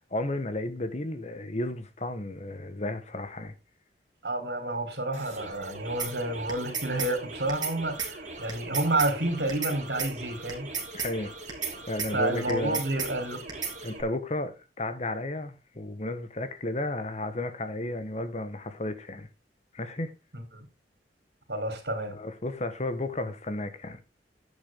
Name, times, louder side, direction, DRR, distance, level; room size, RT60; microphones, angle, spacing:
voice 1, 0.1-3.5 10.9-11.3 11.9-12.8 13.8-19.3 19.7-20.1 22.1-24.0, left 1 dB, 40° left, 1.3 m, -33 dB
voice 2, 4.2-10.7 12.1-13.5 20.3-20.7 21.5-22.2, right 2 dB, 70° right, 3.8 m, -30 dB
sound 1, 5.1-14.0, right 2 dB, 45° right, 3.5 m, -43 dB
sound 2, 6.0-6.1 6.5-7.1 7.5-7.7 8.0-8.1 8.5-9.1 9.5-9.7 10.0-10.1 10.5-11.1 11.5-11.7 12.0-12.1 12.5-13.1 13.5-13.7, right 6 dB, 25° right, 3.1 m, -32 dB
10.5 x 8.8 x 3.7 m
head